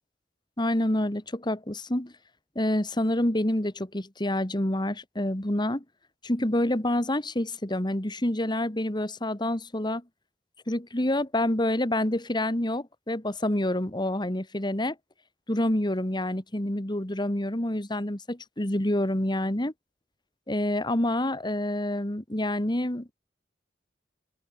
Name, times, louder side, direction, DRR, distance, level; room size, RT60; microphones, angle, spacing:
voice 1, 0.6-2.1 2.6-5.8 6.2-10.0 10.7-15.0 15.5-19.7 20.5-23.1, left 1 dB, 25° left, 2.1 m, -27 dB
open air
head